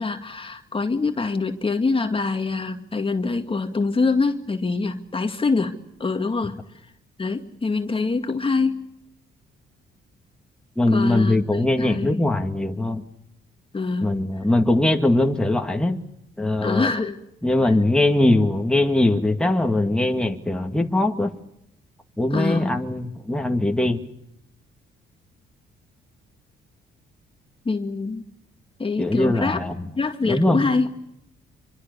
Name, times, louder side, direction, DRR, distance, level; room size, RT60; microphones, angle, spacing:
voice 1, 0.0-6.6 7.2-8.8 10.9-12.2 13.7-14.1 16.6-17.2 22.3-22.8 27.7-28.3 28.8-29.6 30.0-30.9, left 4 dB, 25° left, 6 dB, 2.2 m, -25 dB
voice 2, 10.8-13.0 14.0-16.0 16.4-16.9 17.4-21.3 22.2-24.0 29.0-29.8 30.2-30.6, left 1 dB, 5° left, 3 dB, 2.3 m, -21 dB
27.0 x 25.0 x 6.9 m, 0.80 s
cardioid pair, 90°, 20 cm